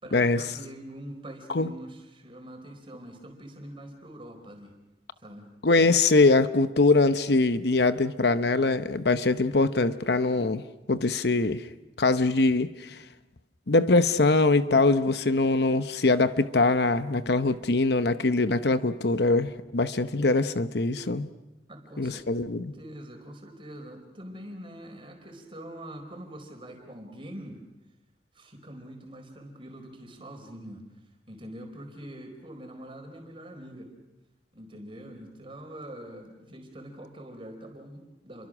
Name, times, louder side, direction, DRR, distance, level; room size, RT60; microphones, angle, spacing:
voice 1, 0.0-4.7 5.2-5.5 21.7-22.3 22.7-27.6 28.3-30.9 31.3-33.9 34.5-38.5, right 1 dB, 30° right, 4 dB, 4.5 m, -44 dB
voice 2, 5.6-10.6 10.9-11.6 12.0-13.0 13.7-21.3 22.0-22.7, left 3 dB, 65° left, 11 dB, 0.9 m, -23 dB
29.5 x 23.5 x 6.2 m, 1.0 s
head